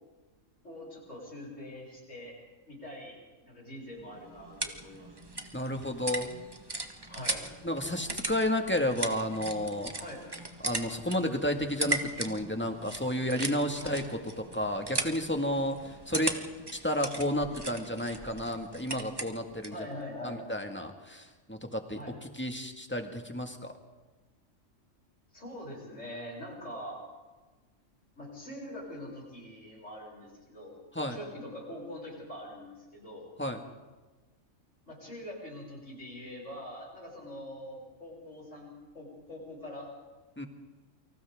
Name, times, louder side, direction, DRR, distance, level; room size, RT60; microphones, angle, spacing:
voice 1, 0.6-2.4 2.7-5.1 7.1-7.5 9.5-10.2 13.8-14.0 19.7-20.4 22.0-22.1 25.3-27.0 28.1-30.8 31.1-33.2 34.9-39.9, left 1 dB, 70° left, -3 dB, 7.9 m, -44 dB
sound 1, 4.0-19.8, right 2 dB, 20° right, 1.2 m, -38 dB
voice 2, 5.5-6.3 7.6-9.9 10.6-14.0 14.5-16.3 16.7-19.8 20.2-22.0 22.3-23.7 30.9-31.2 33.4-33.6 40.4-40.5, left 1 dB, 10° left, 4 dB, 1.8 m, -31 dB
29.0 x 25.0 x 3.7 m, 1.2 s
omnidirectional pair, 1.3 m